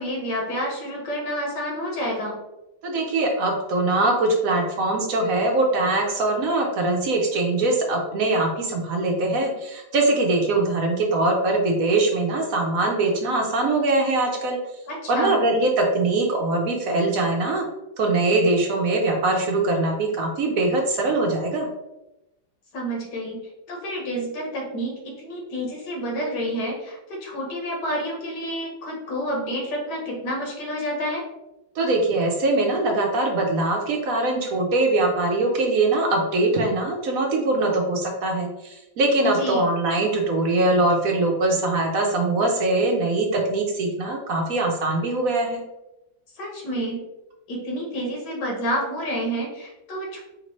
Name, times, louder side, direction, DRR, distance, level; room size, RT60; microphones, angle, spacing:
voice 1, 0.0-2.4 14.9-15.4 22.7-23.4 23.7-31.2 39.2-39.6 46.4-47.0 47.5-50.2, equal, 70° left, -1 dB, 1.7 m, -29 dB
voice 2, 2.8-14.6 15.1-17.6 18.0-21.7 31.8-45.6, right 2 dB, 65° right, 1 dB, 0.9 m, -22 dB
5.0 x 2.7 x 3.1 m, 0.95 s
omnidirectional pair, 1.9 m